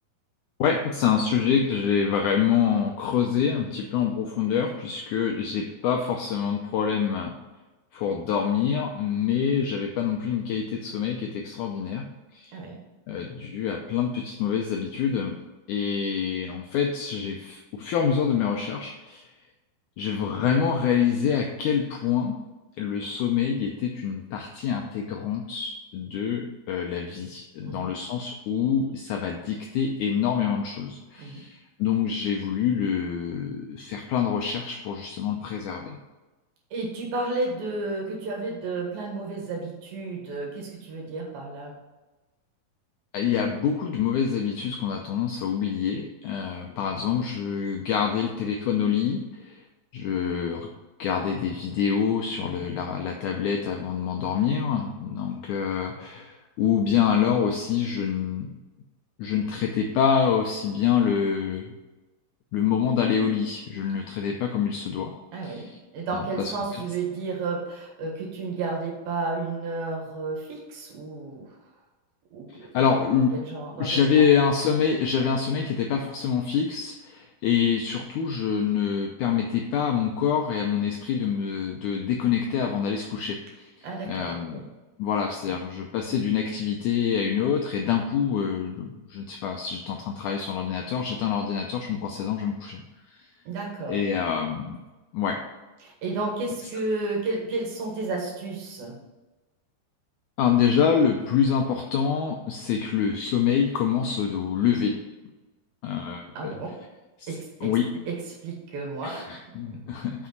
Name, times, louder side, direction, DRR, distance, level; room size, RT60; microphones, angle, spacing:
voice 1, 0.6-7.3 7.9-12.1 12.3-12.5 13.1-15.4 15.7-19.3 20.0-22.4 22.8-36.0 43.1-49.6 49.9-50.7 51.0-58.5 59.2-61.7 62.5-65.1 65.4-65.8 66.1-66.5 72.7-73.3 73.8-83.7 84.1-84.6 85.0-92.8 93.9-94.8 95.1-95.4 100.4-105.0 105.8-106.5 107.6-107.9 109.0-110.3, left 7 dB, 80° left, 2 dB, 1.8 m, -26 dB
voice 2, 36.7-41.7 52.4-52.7 65.3-65.7 65.9-71.5 72.3-72.9 73.3-74.3 83.8-84.7 85.4-85.6 93.5-94.2 95.8-99.0 106.3-106.8 107.3-107.7 108.1-108.2 108.4-109.2 109.7-109.8, right 3 dB, 80° right, -1 dB, 3.3 m, -32 dB
6.2 x 6.0 x 5.8 m, 1.1 s
omnidirectional pair, 4.2 m